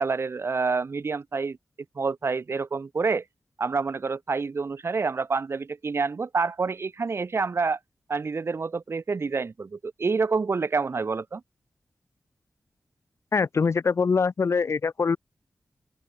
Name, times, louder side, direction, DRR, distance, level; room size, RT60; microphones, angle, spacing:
voice 1, 0.0-1.6 1.9-3.2 3.6-7.8 8.1-11.4, right 4 dB, 60° right, 3.1 m, -27 dB
voice 2, 13.3-15.2, left 5 dB, 70° left, 2.3 m, -23 dB
open air
wide cardioid pair, 85°, 5 cm